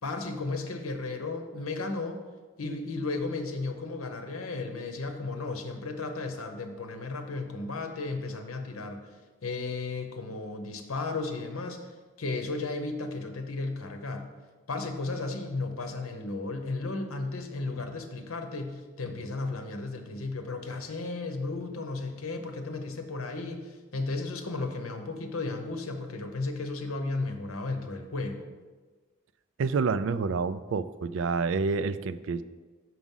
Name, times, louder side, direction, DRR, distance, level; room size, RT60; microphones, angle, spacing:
voice 1, 0.0-2.2 2.6-9.0 9.4-11.8 12.2-14.3 14.7-28.5, left 3 dB, 80° left, 6 dB, 0.9 m, -34 dB
voice 2, 29.6-32.4, right 4 dB, 60° right, 13 dB, 0.3 m, -28 dB
6.1 x 6.0 x 5.5 m, 1.3 s
head